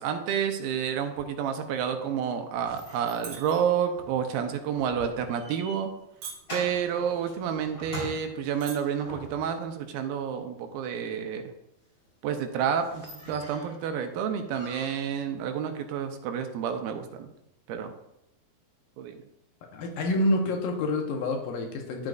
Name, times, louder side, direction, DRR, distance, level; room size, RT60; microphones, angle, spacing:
voice 1, 0.0-5.9 6.5-11.4 12.2-17.3 17.7-17.9 19.0-19.1, right 8 dB, 85° right, 6 dB, 2.6 m, -29 dB
sound 1, 2.6-9.7 12.1-12.2 12.5-12.6 12.8-13.8 14.5-15.2, equal, 25° left, 3.6 m, -44 dB
sound 2, 3.2-3.5 3.9-4.2 4.8-5.0 5.7-6.0 6.2-6.7 7.5-7.6 7.8-7.9 8.4-8.7 9.1-9.4, right 6 dB, 70° right, 1.5 m, -40 dB
voice 2, 19.7-22.1, left 1 dB, 75° left, 2 dB, 2.5 m, -27 dB
11.0 x 7.8 x 2.5 m, 0.82 s
omnidirectional pair, 4.3 m